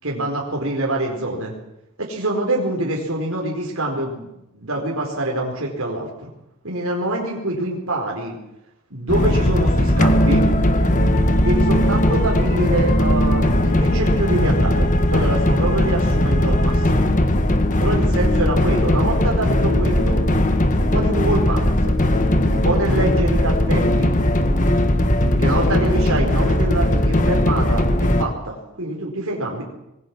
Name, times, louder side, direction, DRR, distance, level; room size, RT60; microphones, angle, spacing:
voice 1, 0.0-1.5 2.0-6.3 6.6-8.4 8.9-10.5 11.4-17.1 17.8-20.3 20.8-21.9 22.5-24.2 25.2-29.6, right 1 dB, 70° right, -1 dB, 4.8 m, -25 dB
sound 1, 9.1-28.2, left 1 dB, 35° left, 1.7 m, -18 dB
25.5 x 21.5 x 6.3 m, 0.89 s
head